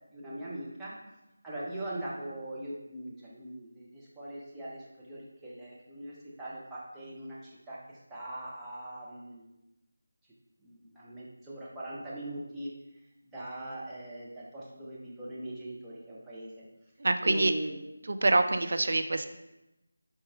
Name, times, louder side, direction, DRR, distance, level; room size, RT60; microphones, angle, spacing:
voice 1, 0.1-1.0 1.4-9.5 10.6-12.7 13.3-16.5 17.2-17.8, right 1 dB, 5° right, -9 dB, 0.6 m, -41 dB
voice 2, 17.0-17.5 18.1-19.3, right 2 dB, 50° right, 8 dB, 0.3 m, -25 dB
3.8 x 3.7 x 3.6 m, 0.94 s
figure-of-eight pair, 160°, 0 cm